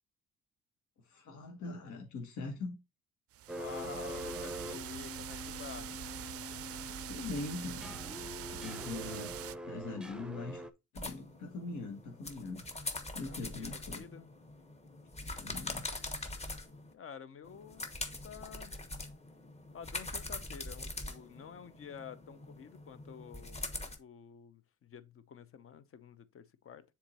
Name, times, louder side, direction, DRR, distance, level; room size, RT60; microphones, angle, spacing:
voice 1, 1.0-2.8 7.1-8.0 8.5-9.3 9.7-10.6 10.9-12.7 13.1-14.1 15.4-15.9, left 3 dB, 75° left, 1.3 m, -42 dB
sound 1, 3.3-9.5, right 12 dB, 50° right, 0.4 m, -44 dB
sound 2, 3.5-10.7, left 1 dB, 5° right, 0.6 m, -44 dB
voice 2, 3.6-5.9 13.4-14.3 16.9-18.7 19.7-23.7 24.0-26.8, left 7 dB, 45° left, 0.7 m, -50 dB
sound 3, 11.0-16.9 17.4-24.0, left 2 dB, 20° left, 1.1 m, -43 dB
7.1 x 3.6 x 4.1 m
cardioid pair, 90°, 30 cm